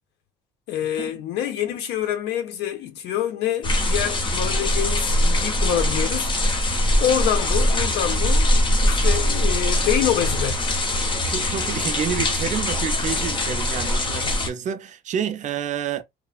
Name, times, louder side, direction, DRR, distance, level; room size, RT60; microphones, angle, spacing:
voice 1, 0.7-6.3 7.0-8.5 8.8-10.8 14.2-14.4, left 10 dB, 85° left, 0.8 m, -26 dB
sound 1, 3.6-14.5, left 1 dB, 30° left, 0.8 m, -22 dB
voice 2, 11.2-16.0, right 8 dB, 45° right, 0.5 m, -29 dB
3.0 x 2.1 x 2.3 m
cardioid pair, 110°, 17 cm